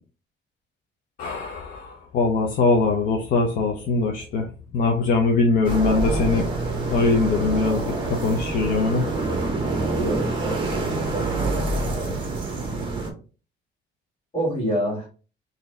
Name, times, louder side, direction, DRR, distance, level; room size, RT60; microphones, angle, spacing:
voice 1, 1.2-4.5 4.7-6.5 6.9-9.1, left 3 dB, 45° left, 1 dB, 0.5 m, -22 dB
sound 1, 5.6-13.1, right 2 dB, 25° right, 0.8 m, -26 dB
voice 2, 10.0-12.2 14.3-15.1, equal, 30° left, -3 dB, 2.0 m, -29 dB
4.0 x 2.7 x 3.3 m, 0.36 s
cardioid pair, 180°, 19 cm